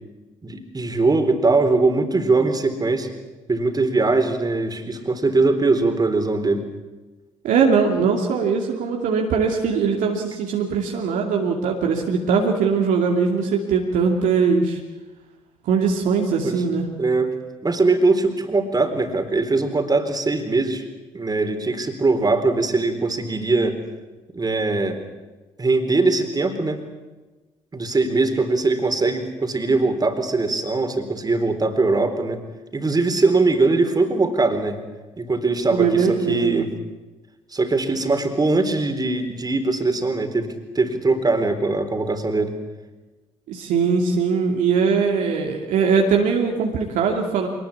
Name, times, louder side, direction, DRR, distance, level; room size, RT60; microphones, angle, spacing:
voice 1, 0.4-3.1 3.5-6.7 16.4-16.6 17.0-17.4 17.6-20.8 21.1-23.8 24.3-25.0 25.6-26.8 27.7-32.4 32.7-34.8 35.2-36.7 37.5-42.5, right 3 dB, 25° right, 7 dB, 3.9 m, -21 dB
voice 2, 7.4-14.8 15.6-16.9 35.7-36.6 43.5-47.5, right 5 dB, 60° right, 1 dB, 2.6 m, -21 dB
26.0 x 19.5 x 8.6 m, 1.2 s
figure-of-eight pair, 40°, 15 cm